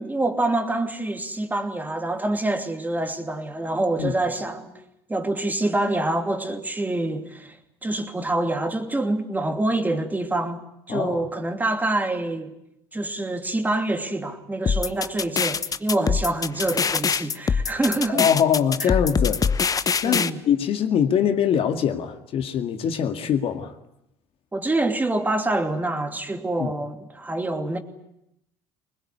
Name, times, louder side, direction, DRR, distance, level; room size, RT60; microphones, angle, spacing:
voice 1, 0.0-4.7 5.1-7.6 7.8-10.6 10.9-12.5 12.9-18.3 18.8-18.9 20.0-20.4 24.5-27.8, right 2 dB, 15° right, 2.8 m, -26 dB
voice 2, 10.9-11.3 18.1-19.4 20.0-23.7 26.6-26.7, left 8 dB, 55° left, 2.1 m, -23 dB
sound 1, 14.7-20.3, left 6 dB, 30° left, 1.0 m, -23 dB
22.0 x 20.5 x 9.8 m
supercardioid pair, 80°, 12 cm